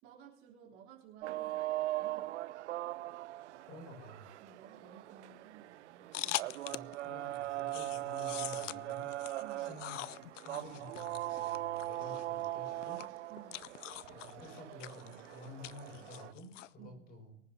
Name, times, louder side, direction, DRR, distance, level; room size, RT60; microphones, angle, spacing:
voice 1, 0.0-2.4 4.4-6.9 9.4-9.8 13.3-13.6 16.8-17.0, right 8 dB, 35° right, -3 dB, 3.5 m, -56 dB
sound 1, 1.2-16.3, right 16 dB, 65° right, 0.5 m, -40 dB
voice 2, 3.6-4.3 6.7-9.1 9.6-13.0 14.1-17.3, left 1 dB, 25° left, 1 dB, 6.2 m, -51 dB
sound 2, 6.1-7.0 7.3-16.7, left 14 dB, 70° left, 0.6 m, -44 dB
24.0 x 9.6 x 2.8 m, 0.69 s
hypercardioid pair, 140°, 38 cm